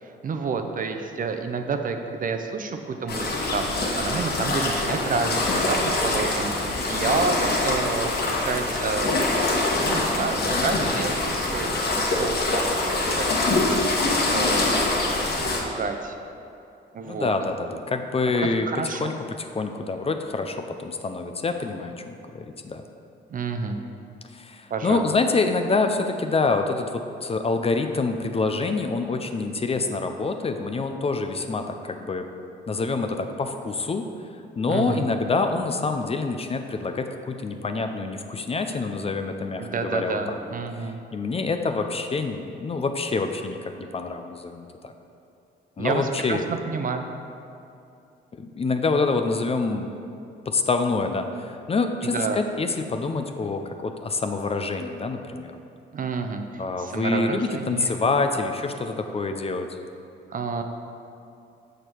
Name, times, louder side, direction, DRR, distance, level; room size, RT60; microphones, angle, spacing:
voice 1, 0.0-6.5 6.9-9.2 9.8-13.7 14.2-14.9 15.6-16.2 16.9-17.3 18.3-19.1 23.3-23.8 24.7-25.1 34.7-35.1 39.6-41.0 45.8-47.1 52.0-52.4 55.9-57.9 60.3-60.6, right 4 dB, 45° right, 6 dB, 0.6 m, -29 dB
sound 1, 3.1-15.6, left 2 dB, 55° left, 1.3 m, -24 dB
voice 2, 17.0-22.8 24.3-32.3 32.7-34.1 34.6-40.4 40.8-44.9 45.8-46.5 48.4-49.9 50.5-55.5 56.6-59.7, left 3 dB, 30° left, 6 dB, 0.5 m, -26 dB
6.8 x 6.5 x 4.5 m, 2.6 s
cardioid pair, 90°, 20 cm